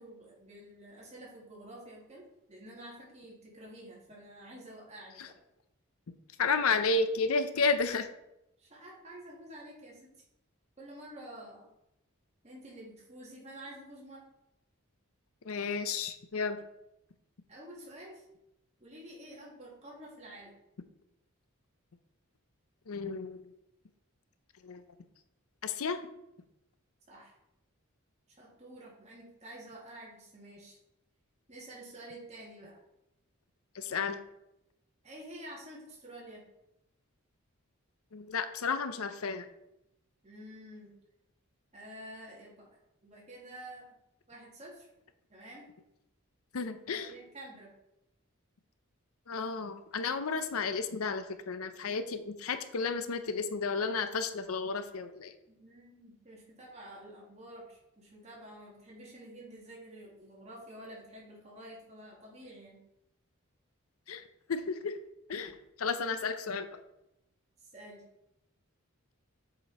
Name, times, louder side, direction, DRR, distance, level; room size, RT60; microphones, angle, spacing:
voice 1, 0.0-5.4 8.6-10.1 10.8-11.7 12.4-14.2 17.5-18.2 18.8-20.5 27.1-27.3 28.3-30.8 31.5-32.8 35.0-36.4 40.2-40.9 41.7-42.7 43.0-43.8 44.3-44.9 45.3-45.7 46.9-47.7 55.5-62.8 67.7-68.0, right 1 dB, 30° right, -4 dB, 2.3 m, -49 dB
voice 2, 6.4-8.1 15.4-16.6 22.9-23.4 24.6-24.8 25.6-26.0 33.7-34.2 38.1-39.5 46.5-47.1 49.3-55.3 64.1-64.2 64.5-65.0 65.3-66.7, left 4 dB, 80° left, 10 dB, 0.6 m, -32 dB
7.6 x 5.0 x 4.2 m, 0.85 s
head